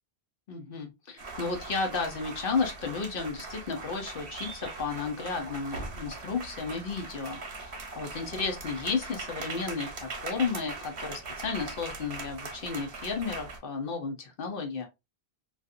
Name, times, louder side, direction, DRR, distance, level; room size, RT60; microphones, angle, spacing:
voice 1, 0.5-14.9, left 4 dB, 60° left, 0.9 m, -33 dB
sound 1, 1.2-13.6, right 3 dB, 80° right, 1.0 m, -40 dB
2.7 x 2.5 x 2.4 m
omnidirectional pair, 1.1 m